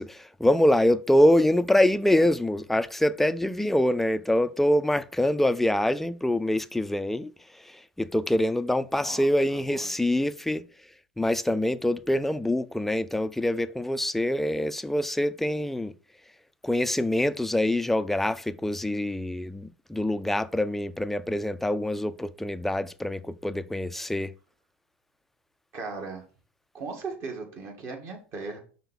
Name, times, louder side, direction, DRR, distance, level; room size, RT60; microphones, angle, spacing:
voice 1, 0.0-10.7 11.2-15.9 16.6-24.3, left 1 dB, 5° left, 0.4 m, -25 dB
voice 2, 9.0-9.9 25.7-26.2 26.7-28.6, right 4 dB, 45° right, 2.3 m, -37 dB
5.6 x 3.6 x 5.5 m
hypercardioid pair, 90°, 6 cm